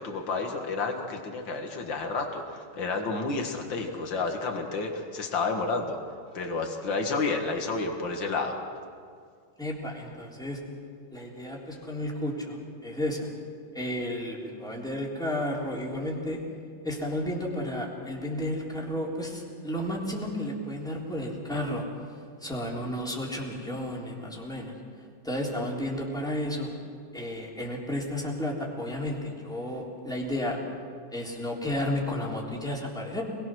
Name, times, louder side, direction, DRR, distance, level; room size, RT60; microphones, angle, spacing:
voice 1, 0.0-6.0 6.3-8.6, left 3 dB, 80° left, 3 dB, 2.5 m, -30 dB
voice 2, 9.6-10.6 11.1-13.3 13.7-16.4 16.8-21.8 22.4-24.7 25.2-26.7 27.1-30.6 31.1-33.2, left 1 dB, ahead, -3 dB, 3.7 m, -32 dB
26.0 x 21.0 x 6.3 m, 2.2 s
omnidirectional pair, 2.0 m